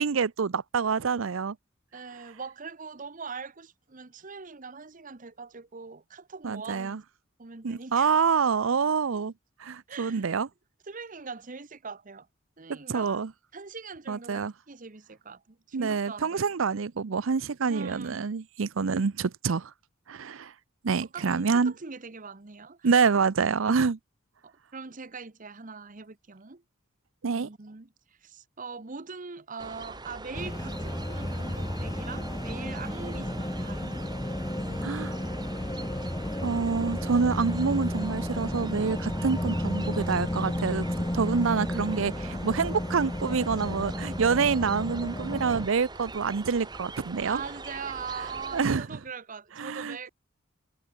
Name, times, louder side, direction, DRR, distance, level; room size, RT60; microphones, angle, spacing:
voice 1, 0.0-1.6 6.4-7.0 7.6-9.3 9.6-10.5 12.7-13.3 14.1-14.5 15.7-19.7 20.1-20.5 20.8-21.7 22.8-24.0 27.2-27.5 34.8-35.1 36.4-40.9 41.1-47.4 48.5-48.9 49.6-50.1, right 5 dB, 70° right, 0.6 m, -27 dB
voice 2, 1.9-7.0 7.4-8.1 9.9-10.3 10.9-12.3 12.6-13.2 13.5-16.4 17.7-18.3 21.1-23.0 24.4-26.6 27.2-34.0 34.4-35.0 47.2-50.1, right 5 dB, 40° right, 1.1 m, -42 dB
sound 1, 29.6-48.8, right 3 dB, 20° right, 1.7 m, -43 dB
sound 2, 30.3-45.7, left 1 dB, 15° left, 1.1 m, -32 dB
head